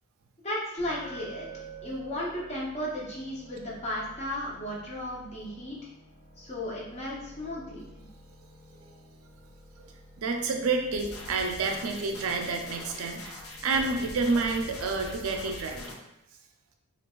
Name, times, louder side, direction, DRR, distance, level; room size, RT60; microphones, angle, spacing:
voice 1, 0.4-1.5 1.8-5.9 6.4-7.8, left 1 dB, 30° left, -5 dB, 0.8 m, -35 dB
sound 1, 0.8-15.5, left 1 dB, 65° left, 1.5 m, -52 dB
Glass, 1.0-5.2, right 7 dB, 10° left, 0.3 m, -48 dB
voice 2, 10.2-15.8, right 4 dB, 80° right, 4 dB, 0.5 m, -29 dB
sound 2, 10.9-15.9, left 2 dB, 85° left, 0.7 m, -43 dB
4.5 x 2.3 x 2.4 m, 0.87 s
head